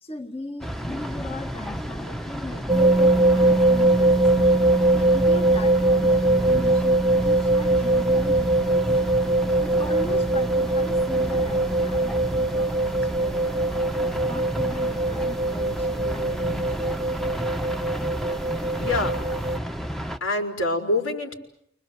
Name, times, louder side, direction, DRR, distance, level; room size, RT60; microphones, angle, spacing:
voice 1, 0.0-13.6 14.3-17.0, left 1 dB, 30° left, 3 dB, 1.8 m, -38 dB
sound 1, 0.6-20.2, equal, ahead, 1.1 m, -32 dB
sound 2, 2.7-19.6, right 2 dB, 20° right, 1.2 m, -22 dB
voice 2, 18.8-19.2 20.2-21.3, left 2 dB, 85° left, 2 dB, 4.9 m, -25 dB
29.5 x 25.5 x 8.0 m, 0.74 s
head